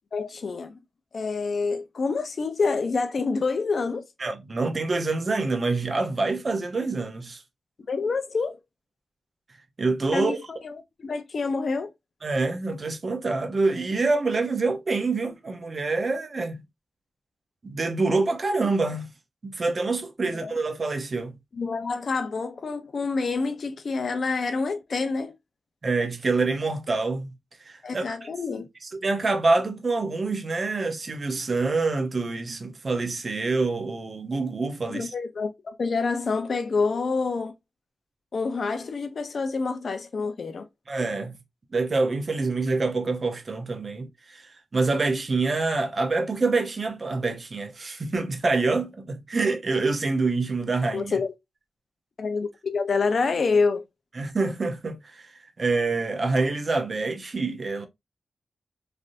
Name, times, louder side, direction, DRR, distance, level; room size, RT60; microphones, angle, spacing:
voice 1, 0.1-0.8 1.1-4.0 7.9-8.6 10.1-10.6 11.0-11.9 20.3-20.5 21.5-25.3 27.8-28.6 34.9-37.5 38.3-40.7 50.9-51.3 52.2-53.8, left 4 dB, 60° left, 0.5 m, -27 dB
voice 2, 4.2-7.4 9.8-10.4 12.2-16.6 17.6-19.1 19.4-21.3 25.8-27.3 27.7-28.3 29.0-35.1 40.9-41.3 41.7-51.2 54.2-55.3 55.6-57.9, right 3 dB, 45° right, 0.7 m, -26 dB
3.3 x 2.6 x 2.5 m
wide cardioid pair, 85°, 0 cm